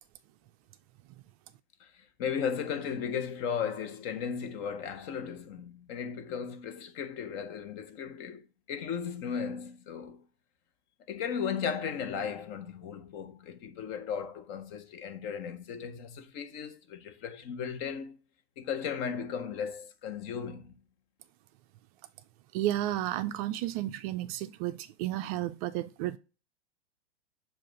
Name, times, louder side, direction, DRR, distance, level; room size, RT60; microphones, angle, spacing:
voice 1, 2.2-8.4 8.7-10.2 11.1-18.2 18.6-20.7, left 7 dB, 40° left, 0.9 m, -36 dB
voice 2, 22.5-26.2, right 14 dB, 35° right, 0.4 m, -32 dB
7.5 x 2.5 x 5.0 m
hypercardioid pair, 100°, 31 cm